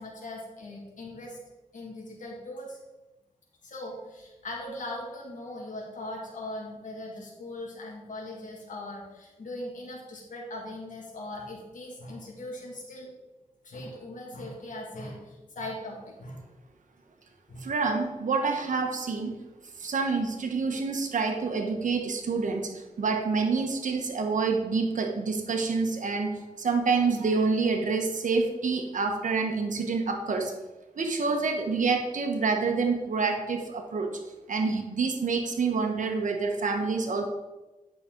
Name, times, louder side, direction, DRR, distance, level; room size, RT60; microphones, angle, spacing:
voice 1, 0.0-1.4 1.7-2.8 3.6-13.1 13.6-16.4 17.5-17.7, left 1 dB, 70° left, -2 dB, 2.3 m, -40 dB
voice 2, 17.6-19.3 19.8-30.5 31.0-34.2 34.5-37.2, right 4 dB, 70° right, 4 dB, 1.3 m, -27 dB
9.3 x 6.6 x 3.9 m, 1.1 s
cardioid pair, 75°, 14 cm